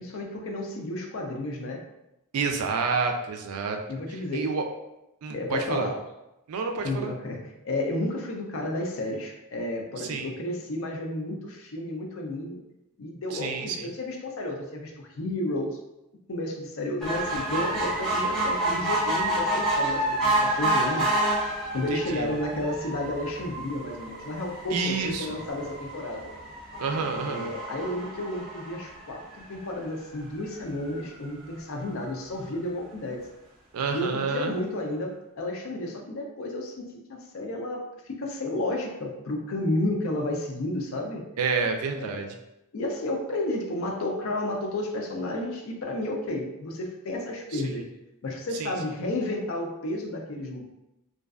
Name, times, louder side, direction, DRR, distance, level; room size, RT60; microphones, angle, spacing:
voice 1, 0.0-1.8 3.9-4.5 5.3-6.0 6.8-12.6 13.0-15.8 16.3-21.1 21.7-26.3 27.3-33.2 33.9-36.8 37.1-41.3 42.0-42.2 42.7-47.8 48.2-50.6, left 1 dB, 65° left, 1 dB, 0.4 m, -32 dB
voice 2, 2.3-3.8 4.1-4.6 5.2-5.9 6.5-7.1 10.0-10.3 13.3-13.9 21.9-22.3 24.7-25.4 26.8-27.5 33.7-34.5 41.4-42.3 47.5-47.8 48.6-48.7, right 5 dB, 85° right, 4 dB, 0.4 m, -29 dB
sound 1, 17.0-29.6 30.2-30.3 30.6-30.7 30.9-31.0, right 1 dB, 5° left, 0.6 m, -29 dB
2.5 x 2.3 x 2.3 m, 0.90 s
head